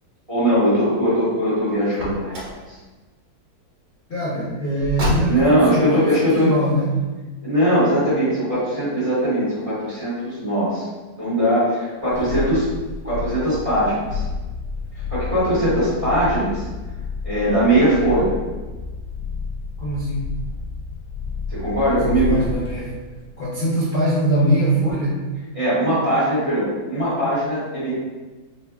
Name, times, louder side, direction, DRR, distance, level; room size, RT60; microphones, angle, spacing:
voice 1, 0.3-2.5 5.3-6.5 7.4-10.8 11.2-12.7 13.0-14.2 15.1-16.6 17.2-18.4 21.5-22.3 25.5-27.9, right 1 dB, 20° right, -12 dB, 1.2 m, -20 dB
Car, 1.9-2.6 4.8-5.6, equal, 60° right, 1.3 m, -27 dB
voice 2, 4.1-6.9 19.8-20.3 21.8-22.9 23.4-25.2, right 1 dB, 45° left, -11 dB, 0.8 m, -22 dB
sound 1, 12.0-22.7 23.1-23.2, left 4 dB, 85° left, 1.7 m, -30 dB
4.5 x 2.5 x 2.3 m, 1.2 s
omnidirectional pair, 2.2 m